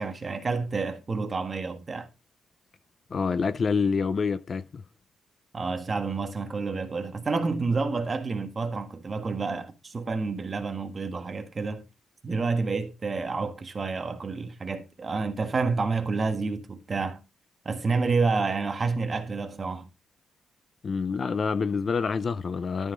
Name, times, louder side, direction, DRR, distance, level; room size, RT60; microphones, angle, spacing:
voice 1, 0.0-2.1 5.5-11.9 12.2-17.2 17.6-19.9, right 4 dB, 25° right, 1.4 m, -29 dB
voice 2, 3.1-4.8 20.8-22.9, left 5 dB, 30° left, 0.5 m, -27 dB
12.5 x 5.6 x 3.9 m
wide cardioid pair, 170°, 0 cm